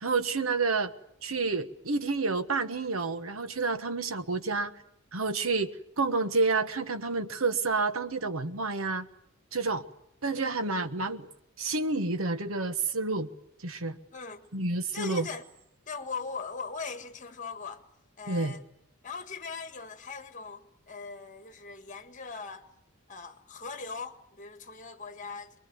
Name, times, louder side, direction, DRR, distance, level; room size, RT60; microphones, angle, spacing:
voice 1, 0.0-0.9 1.2-4.7 5.1-9.1 9.5-9.8 10.2-11.3 11.6-13.3 13.6-14.0 14.5-15.3 18.3-18.6, right 3 dB, 80° right, 1.3 m, -29 dB
voice 2, 14.9-15.4 15.9-17.8 18.2-18.6 19.0-22.7 23.1-25.6, left 4 dB, 35° left, 1.8 m, -40 dB
23.0 x 22.0 x 9.3 m
head